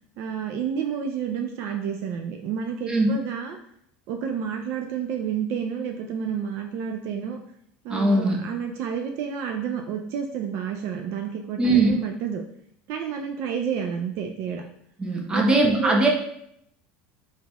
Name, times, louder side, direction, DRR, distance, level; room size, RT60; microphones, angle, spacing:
voice 1, 0.2-3.6 4.1-7.4 7.8-12.4 12.9-14.6 15.3-16.1, right 7 dB, 60° right, 4 dB, 0.4 m, -30 dB
voice 2, 7.9-8.4 11.6-11.9 15.0-16.1, right 2 dB, 20° right, 0 dB, 0.9 m, -20 dB
4.0 x 4.0 x 2.3 m, 0.71 s
supercardioid pair, 100°, 5 cm